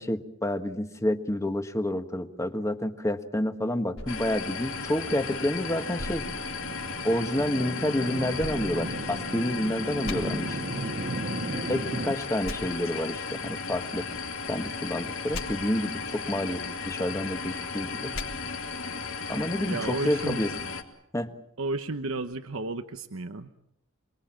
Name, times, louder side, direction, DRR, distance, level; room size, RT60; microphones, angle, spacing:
voice 1, 0.0-6.2 7.0-10.6 11.7-14.0 14.5-18.1 19.3-20.5 21.1-21.3, left 1 dB, 15° left, 7 dB, 1.5 m, -29 dB
sound 1, 3.9-5.4 6.0-7.2 8.4-9.5 10.0-10.2 12.4-12.6 15.3-15.4 18.1-18.3, left 2 dB, 85° left, 3.6 m, -40 dB
sound 2, 4.1-20.8, left 4 dB, 70° left, 2.9 m, -35 dB
sound 3, 4.4-12.1, right 2 dB, 45° right, 1.1 m, -36 dB
voice 2, 19.7-20.4 21.6-23.5, right 3 dB, 75° right, 8 dB, 1.0 m, -32 dB
28.0 x 21.5 x 7.5 m, 0.78 s
head